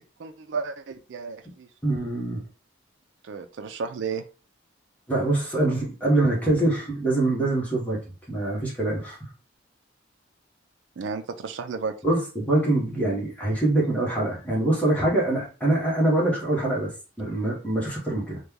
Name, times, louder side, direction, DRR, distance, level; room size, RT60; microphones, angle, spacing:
voice 1, 0.2-1.7 3.2-4.2 11.0-11.9, right 5 dB, 70° right, 7 dB, 0.4 m, -33 dB
voice 2, 1.8-2.4 5.1-9.2 12.0-18.4, right 2 dB, 10° left, -4 dB, 1.0 m, -24 dB
3.1 x 2.2 x 3.6 m, 0.35 s
head